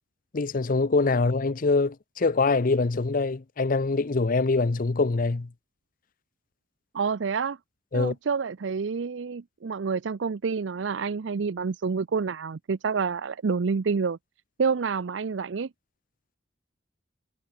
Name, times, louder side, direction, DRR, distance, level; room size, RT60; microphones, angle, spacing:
voice 1, 0.3-5.5 7.9-8.1, left 3 dB, 45° left, 0.7 m, -24 dB
voice 2, 6.9-7.6 7.9-14.2 14.6-15.7, right 5 dB, 75° right, 0.5 m, -28 dB
head